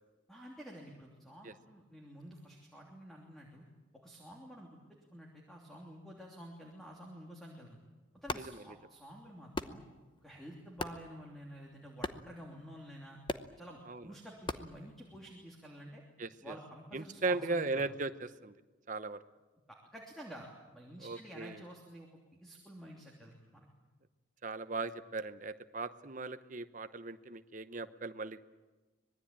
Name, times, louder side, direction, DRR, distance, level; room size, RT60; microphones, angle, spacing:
voice 1, 0.3-3.6 4.0-4.8 5.1-7.8 8.1-9.8 10.2-13.2 13.6-16.0 16.4-17.9 19.7-22.1 22.4-23.7, equal, ahead, -1 dB, 3.1 m, -50 dB
sound 1, 8.2-15.5, left 2 dB, 25° left, 0.9 m, -44 dB
voice 2, 16.2-16.5 16.9-18.5 18.9-19.2 21.0-21.6 24.4-28.4, right 3 dB, 40° right, 11 dB, 0.9 m, -38 dB
25.0 x 20.5 x 8.8 m, 1.2 s
head